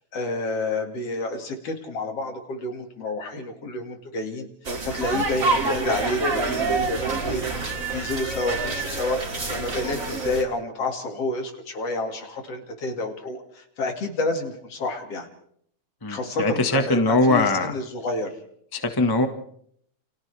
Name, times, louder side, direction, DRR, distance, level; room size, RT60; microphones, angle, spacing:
voice 1, 0.1-4.5 4.8-7.4 7.9-9.2 9.5-15.3 16.1-18.3, left 2 dB, 55° left, 3 dB, 3.3 m, -29 dB
sound 1, 4.6-10.4, right 3 dB, 30° right, 2.7 m, -27 dB
voice 2, 16.0-17.7 18.7-19.3, left 2 dB, 15° left, 6 dB, 0.8 m, -21 dB
29.5 x 28.5 x 3.5 m, 0.67 s
omnidirectional pair, 3.3 m